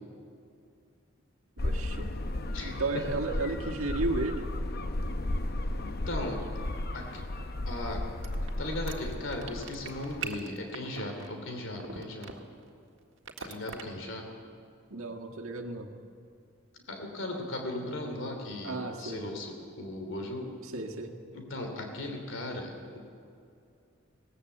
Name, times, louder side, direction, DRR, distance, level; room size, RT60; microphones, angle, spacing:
sound 1, 1.6-10.3, left 1 dB, 45° left, 0.9 m, -34 dB
voice 1, 1.6-2.1 2.6-4.5 14.9-16.0 18.6-19.2 20.7-21.2, right 3 dB, 80° right, 2 dB, 1.7 m, -33 dB
voice 2, 2.5-3.0 5.8-6.4 6.9-7.2 7.7-8.0 8.6-12.3 13.4-14.4 16.7-20.5 21.3-23.1, left 1 dB, 65° left, 3 dB, 3.0 m, -37 dB
sound 2, 8.2-12.7 13.2-13.8, right 6 dB, 60° right, 1.7 m, -40 dB
19.5 x 19.0 x 7.9 m, 2.4 s
head